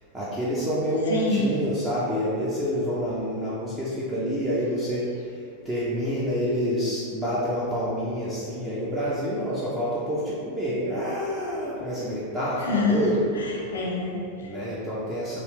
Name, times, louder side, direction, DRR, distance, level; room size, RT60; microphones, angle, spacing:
voice 1, 0.1-5.0 5.6-13.2 14.4-15.4, equal, 15° right, -9 dB, 0.6 m, -27 dB
voice 2, 1.1-1.5 12.6-13.0 13.4-14.5, left 3 dB, 65° left, 0 dB, 0.5 m, -26 dB
3.1 x 2.8 x 3.1 m, 2.3 s
figure-of-eight pair, 90°, 0 cm